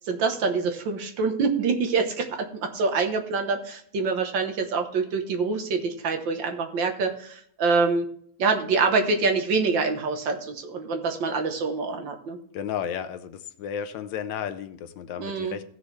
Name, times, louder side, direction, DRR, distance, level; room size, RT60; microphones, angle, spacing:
voice 1, 0.0-8.1 8.4-12.4 15.2-15.6, right 4 dB, 70° right, 5 dB, 1.8 m, -25 dB
voice 2, 12.5-15.6, left 8 dB, 70° left, 10 dB, 1.3 m, -33 dB
16.5 x 6.2 x 3.2 m, 0.64 s
omnidirectional pair, 2.2 m